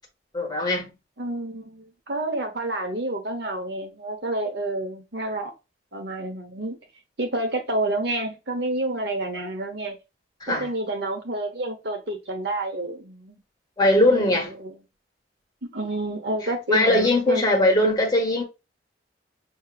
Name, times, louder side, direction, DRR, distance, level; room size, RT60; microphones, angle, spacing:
voice 1, 0.3-0.9 10.4-10.6 13.8-14.5 16.7-18.4, left 1 dB, 20° left, 1.3 m, -20 dB
voice 2, 1.2-5.5 5.9-6.8 7.2-10.0 10.5-13.4 14.0-14.8 15.6-17.5, right 1 dB, 65° right, 1.1 m, -29 dB
6.4 x 2.9 x 2.4 m
head